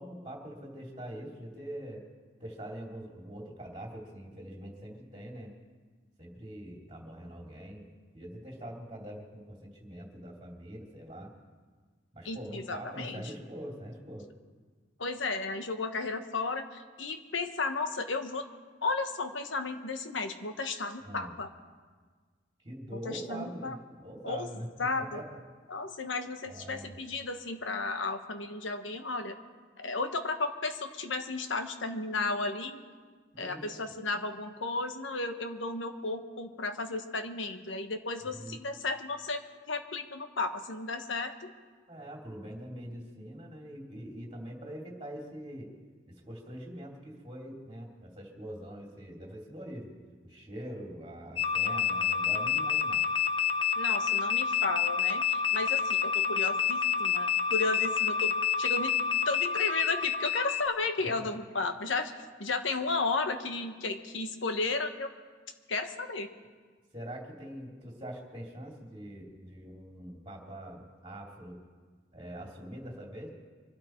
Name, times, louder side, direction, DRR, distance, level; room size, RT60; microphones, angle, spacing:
voice 1, 0.0-2.0 2.4-5.5 6.2-7.8 8.1-11.3 12.1-14.3 21.0-21.3 22.6-25.3 26.5-27.0 33.3-34.0 38.3-38.6 41.9-45.7 46.3-49.9 50.2-53.0 61.0-61.3 66.9-71.6 72.1-73.3, equal, 25° right, -1 dB, 2.9 m, -43 dB
voice 2, 12.2-13.3 15.0-18.5 18.8-21.5 22.9-23.8 24.2-24.5 24.8-25.2 25.7-29.4 29.8-32.8 33.4-39.4 39.7-41.5 53.8-58.9 59.2-65.1 65.7-66.3, left 3 dB, 85° left, 7 dB, 1.3 m, -34 dB
sound 1, 51.4-60.7, left 7 dB, 25° left, 0.6 m, -28 dB
25.0 x 12.0 x 4.5 m, 1.5 s
head